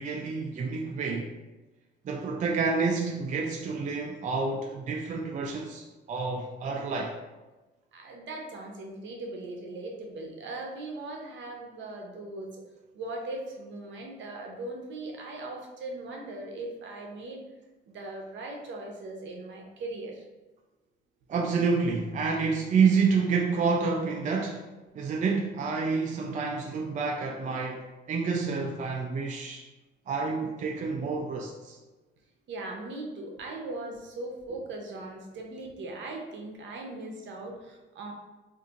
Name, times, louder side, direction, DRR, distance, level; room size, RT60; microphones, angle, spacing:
voice 1, 0.0-1.3 2.0-7.1 21.3-24.6 24.9-29.6 30.1-31.8, right 4 dB, 40° right, 0.4 m, -28 dB
voice 2, 7.9-12.6 12.9-17.4 17.9-20.2 32.5-38.1, right 2 dB, 70° right, 0.7 m, -39 dB
2.6 x 2.4 x 3.9 m
cardioid pair, 90°, 20 cm